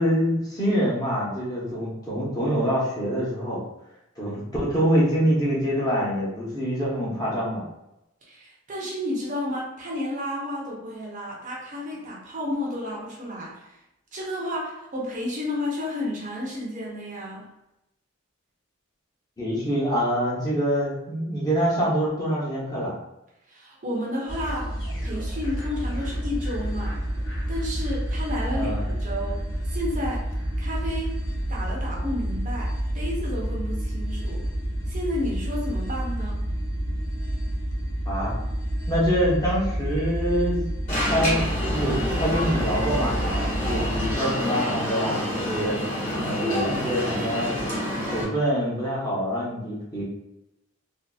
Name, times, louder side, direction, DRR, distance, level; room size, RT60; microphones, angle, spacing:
voice 1, 0.0-3.6 4.2-7.6 19.4-22.9 28.5-28.8 38.1-38.4 38.9-40.6 41.1-43.1 43.6-45.8 46.2-47.5 48.1-50.0, equal, 20° left, -6 dB, 0.8 m, -25 dB
voice 2, 8.2-13.8 14.1-17.5 23.5-24.8 25.0-27.0 27.5-30.3 30.6-31.2 31.5-34.5 34.9-36.4, left 1 dB, 40° right, -3 dB, 0.5 m, -32 dB
sound 1, 24.3-44.2, right 1 dB, 60° left, 0.7 m, -29 dB
Alarm, 40.9-48.2, equal, 35° left, 1.0 m, -28 dB
2.6 x 2.4 x 2.3 m, 0.88 s
head